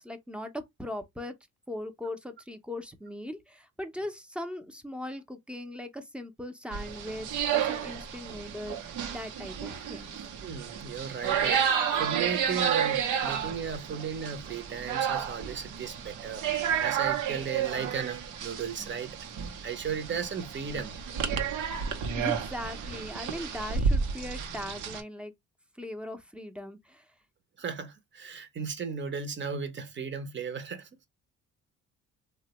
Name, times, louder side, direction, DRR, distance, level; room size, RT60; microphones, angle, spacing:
voice 1, 0.0-1.3 1.7-10.3 22.2-25.3 25.8-27.1, left 1 dB, 5° right, 0.6 m, -39 dB
sound 1, 6.7-25.0, right 7 dB, 85° right, 0.7 m, -31 dB
voice 2, 10.4-11.7 12.0-16.5 16.8-19.2 19.6-20.9 27.6-30.9, right 6 dB, 40° right, 0.7 m, -35 dB
3.1 x 2.1 x 2.9 m
cardioid pair, 90°, 30 cm